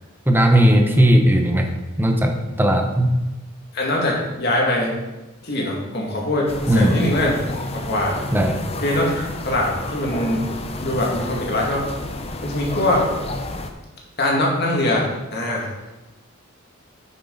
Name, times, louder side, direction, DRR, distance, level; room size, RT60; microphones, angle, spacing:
voice 1, 0.3-1.7 2.0-3.2 6.7-7.0 8.3-8.7, equal, 10° right, 4 dB, 0.8 m, -17 dB
voice 2, 3.7-4.9 5.4-8.2 8.8-10.5 10.8-11.9 12.4-13.1 14.2-15.7, left 1 dB, 50° left, -2 dB, 2.2 m, -22 dB
sound 1, 6.5-13.7, left 2 dB, 30° left, 0.7 m, -31 dB
8.8 x 7.3 x 4.1 m, 1.1 s
head